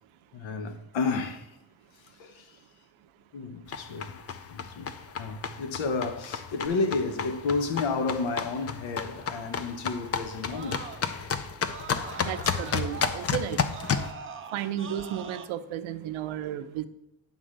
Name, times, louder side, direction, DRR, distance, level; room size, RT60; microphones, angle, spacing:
voice 1, 0.3-1.6 2.0-2.6 3.3-4.2 4.5-10.9 13.2-13.3 14.6-14.7, left 4 dB, 70° left, 1.1 m, -32 dB
sound 1, 3.7-14.1, left 6 dB, 30° left, 0.5 m, -32 dB
Screaming, 6.7-11.3 11.6-15.5, right 6 dB, 25° right, 0.6 m, -45 dB
voice 2, 12.2-13.6 14.5-16.9, right 10 dB, 80° right, 0.7 m, -33 dB
9.4 x 3.7 x 6.6 m
cardioid pair, 150°, 47 cm